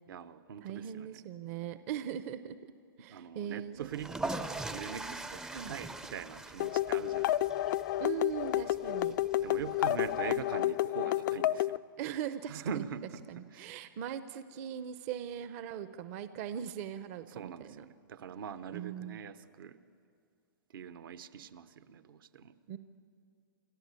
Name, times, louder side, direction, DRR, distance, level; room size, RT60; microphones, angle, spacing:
voice 1, 0.1-1.2 3.1-7.7 9.4-11.8 12.5-13.7 17.3-19.8 20.7-22.5, right 7 dB, 70° right, 12 dB, 1.0 m, -43 dB
voice 2, 0.6-2.7 3.0-3.9 5.5-5.7 8.0-9.2 12.0-12.8 13.3-17.9 18.7-19.2 22.7-22.8, right 9 dB, 45° right, 12 dB, 0.7 m, -40 dB
sound 1, 3.8-10.7, right 2 dB, 5° right, 0.5 m, -42 dB
sound 2, 6.6-11.8, left 14 dB, 55° left, 0.4 m, -30 dB
28.5 x 12.5 x 8.3 m, 2.4 s
hypercardioid pair, 140°, 12 cm